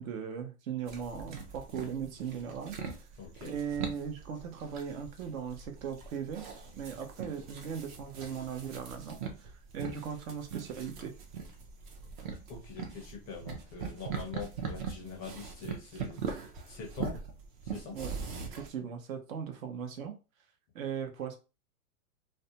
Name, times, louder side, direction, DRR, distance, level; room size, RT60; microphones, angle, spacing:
voice 1, 0.0-2.8 3.4-6.4 6.7-11.1 17.9-18.1 18.4-20.2 20.7-21.4, right 7 dB, 60° right, 6 dB, 0.8 m, -38 dB
sound 1, 0.9-18.7, right 6 dB, 35° right, 0.5 m, -42 dB
voice 2, 3.2-3.5 12.5-17.2 17.6-18.0, left 5 dB, 20° left, 0 dB, 0.5 m, -44 dB
2.5 x 2.1 x 2.8 m, 0.31 s
hypercardioid pair, 135°, 46 cm